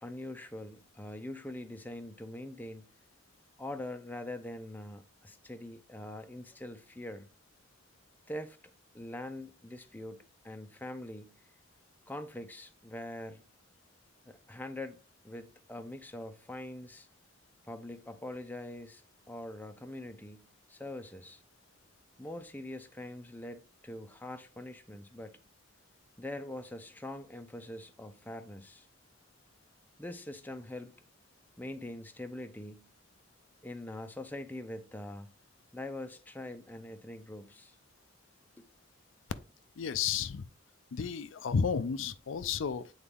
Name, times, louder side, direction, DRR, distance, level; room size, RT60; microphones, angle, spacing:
voice 1, 0.0-2.8 3.6-7.3 8.3-8.6 8.9-10.2 10.4-11.4 12.1-13.4 14.3-17.1 17.6-21.4 22.2-25.4 26.2-28.9 30.0-30.9 31.6-32.9 33.6-35.3 35.7-37.7 38.6-38.7, left 1 dB, 10° left, 0.6 m, -43 dB
voice 2, 39.8-40.5 40.9-42.9, left 6 dB, 80° left, 0.5 m, -32 dB
8.4 x 4.0 x 3.6 m
head